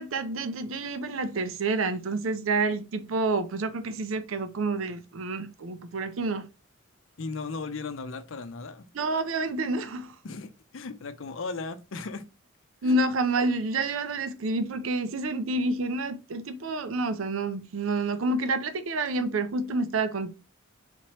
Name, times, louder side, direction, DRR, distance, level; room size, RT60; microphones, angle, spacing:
voice 1, 0.0-6.5 8.9-10.2 12.8-20.3, right 2 dB, 75° right, 0.5 m, -28 dB
voice 2, 7.2-8.9 10.2-12.2 12.8-13.0, left 4 dB, 70° left, 0.6 m, -36 dB
4.2 x 3.0 x 3.1 m
head